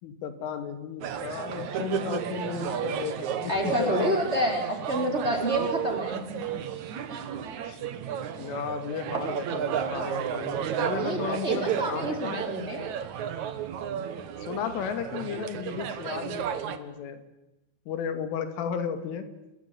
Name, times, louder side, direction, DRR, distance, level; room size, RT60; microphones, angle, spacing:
voice 1, 0.0-4.1 7.7-7.8 8.3-12.4 14.4-17.2 17.9-19.3, left 7 dB, 90° left, 9 dB, 4.8 m, -34 dB
sound 1, 1.0-16.8, right 9 dB, 65° right, 1.9 m, -33 dB
voice 2, 3.5-6.4 7.1-7.2 11.0-12.9, equal, 15° right, 2 dB, 4.7 m, -28 dB
29.5 x 20.5 x 9.9 m, 0.95 s
omnidirectional pair, 5.5 m